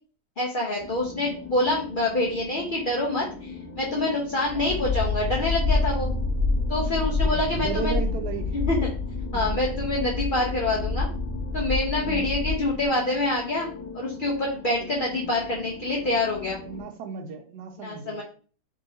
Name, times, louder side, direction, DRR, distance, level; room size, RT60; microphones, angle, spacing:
voice 1, 0.4-3.5 3.8-6.1 6.7-8.0 8.5-8.9 9.3-11.1 11.5-13.7 13.9-16.6 17.8-18.2, left 2 dB, 85° left, -3 dB, 0.4 m, -26 dB
sound 1, 0.8-16.8, left 4 dB, 45° left, 0.9 m, -40 dB
sound 2, 4.5-12.9, left 3 dB, 50° right, 0.5 m, -27 dB
voice 2, 7.1-8.5 9.3-9.6 12.0-12.4 14.8-15.2 16.6-18.2, right 6 dB, 85° right, 5 dB, 1.2 m, -36 dB
3.0 x 2.7 x 2.7 m, 0.41 s
omnidirectional pair, 1.7 m